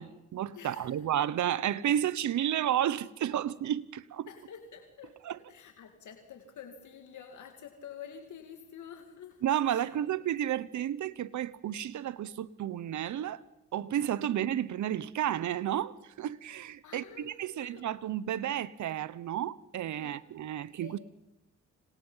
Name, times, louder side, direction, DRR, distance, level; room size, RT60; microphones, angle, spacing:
voice 1, 0.0-4.3 5.3-5.4 9.4-13.4 13.7-21.0, right 11 dB, 75° right, 1.0 m, -32 dB
voice 2, 0.5-1.0 4.3-10.1 14.2-14.4 16.8-17.9 19.9-20.2 20.8-21.0, left 7 dB, 75° left, 2.5 m, -49 dB
30.0 x 27.0 x 5.7 m
cardioid pair, 75°, 30 cm